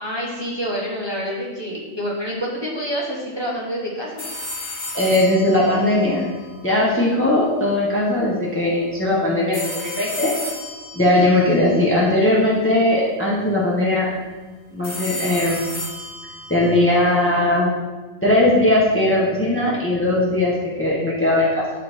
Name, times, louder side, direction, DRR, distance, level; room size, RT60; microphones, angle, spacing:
voice 1, 0.0-4.2, equal, 20° right, -4 dB, 1.4 m, -27 dB
sound 1, 4.2-7.2 9.5-12.7 14.8-17.4, left 2 dB, 50° left, 2.1 m, -34 dB
voice 2, 4.9-6.3 6.6-10.3 10.9-14.1 14.7-15.6 16.5-17.7 18.2-21.6, left 1 dB, 10° left, -5 dB, 1.3 m, -19 dB
11.0 x 4.3 x 4.6 m, 1.3 s
omnidirectional pair, 1.4 m